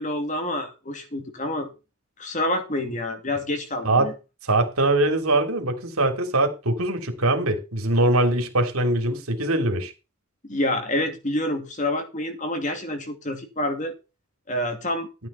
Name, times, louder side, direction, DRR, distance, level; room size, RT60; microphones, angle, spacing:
voice 1, 0.0-1.7 2.2-4.1 10.4-13.9 14.5-15.1, left 1 dB, 35° left, 2.6 m, -27 dB
voice 2, 4.5-9.9, right 2 dB, 80° right, 3.2 m, -22 dB
13.5 x 8.8 x 4.5 m
head